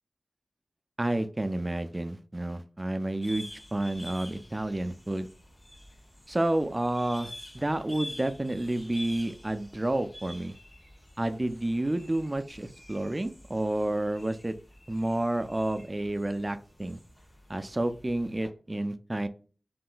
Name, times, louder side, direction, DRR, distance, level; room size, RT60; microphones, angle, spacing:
voice 1, 1.0-5.3 6.3-10.6 11.2-14.5 14.9-17.0 17.5-19.3, right 1 dB, 25° right, 10 dB, 0.3 m, -30 dB
sound 1, 3.2-18.5, left 1 dB, 35° left, 1.2 m, -48 dB
3.6 x 2.5 x 2.2 m, 0.39 s
wide cardioid pair, 80°, 0 cm